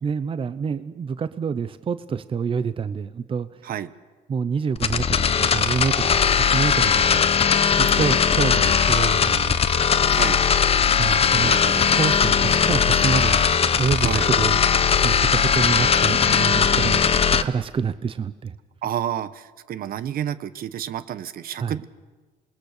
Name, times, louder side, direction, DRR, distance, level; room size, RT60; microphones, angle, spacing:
voice 1, 0.0-3.5 4.3-7.3 7.8-9.6 11.0-11.5 11.9-14.6 15.0-18.6 21.6-21.7, right 6 dB, 30° right, 13 dB, 0.8 m, -27 dB
sound 1, 4.8-17.4, left 7 dB, 35° left, 1.0 m, -19 dB
voice 2, 10.1-10.4 11.4-11.9 14.0-14.3 18.8-21.8, right 10 dB, 60° right, 14 dB, 1.1 m, -30 dB
27.0 x 21.0 x 6.7 m, 1.4 s
cardioid pair, 110°, 17 cm